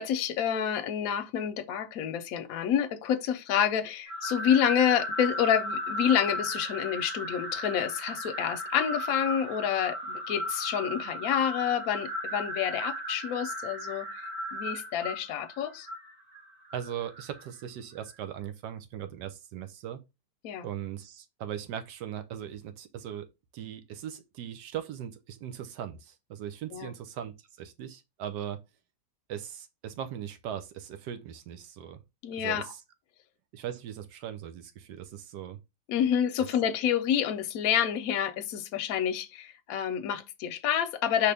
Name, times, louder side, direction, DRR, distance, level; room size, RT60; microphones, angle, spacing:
voice 1, 0.0-14.1 14.5-15.9 20.4-20.7 26.7-26.9 32.2-32.6 35.9-41.3, left 9 dB, 65° left, 1.0 m, -28 dB
sound 1, 4.1-17.4, equal, 65° right, 1.8 m, -36 dB
voice 2, 16.7-20.0 20.6-23.3 23.5-28.6 29.3-32.0 32.4-32.8 33.5-35.6 36.4-36.5, right 10 dB, 85° right, 1.3 m, -39 dB
4.9 x 3.2 x 3.3 m
omnidirectional pair, 1.8 m